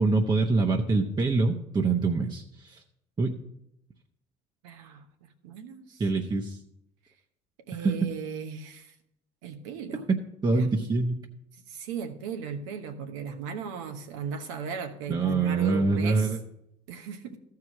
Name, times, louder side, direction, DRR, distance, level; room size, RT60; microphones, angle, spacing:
voice 1, 0.0-2.8 3.2-3.4 6.0-6.6 7.8-7.9 10.4-11.2 15.1-16.4, right 3 dB, 25° right, 3 dB, 0.9 m, -25 dB
voice 2, 4.6-6.0 7.7-8.9 9.4-10.0 10.4-10.8 11.7-16.3 16.9-17.4, right 6 dB, 90° right, 6 dB, 1.1 m, -37 dB
13.5 x 4.8 x 5.9 m, 0.78 s
supercardioid pair, 80°, 16 cm